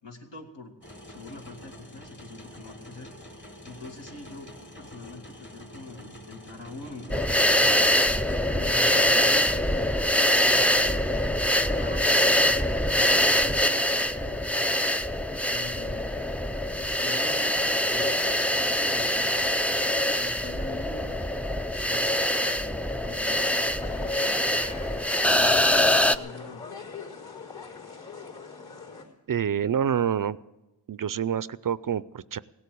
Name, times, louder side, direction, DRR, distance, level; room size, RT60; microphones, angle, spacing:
voice 1, 0.0-0.8 1.1-3.2 3.6-4.5 4.8-7.9 8.5-10.0 10.5-11.1 11.4-14.4 15.5-16.2 16.8-19.6 20.2-21.2 21.8-24.6 25.2-26.6, left 2 dB, 80° left, 1 dB, 2.2 m, -44 dB
sound 1, 0.8-8.4, left 1 dB, 25° left, 1.4 m, -46 dB
sound 2, 7.1-26.2, left 1 dB, 5° left, 0.4 m, -24 dB
sound 3, 23.8-29.0, left 5 dB, 60° left, 4.3 m, -42 dB
voice 2, 29.3-30.4 30.9-32.4, right 8 dB, 50° right, 18 dB, 0.5 m, -27 dB
17.0 x 8.5 x 8.3 m, 0.99 s
cardioid pair, 50°, 44 cm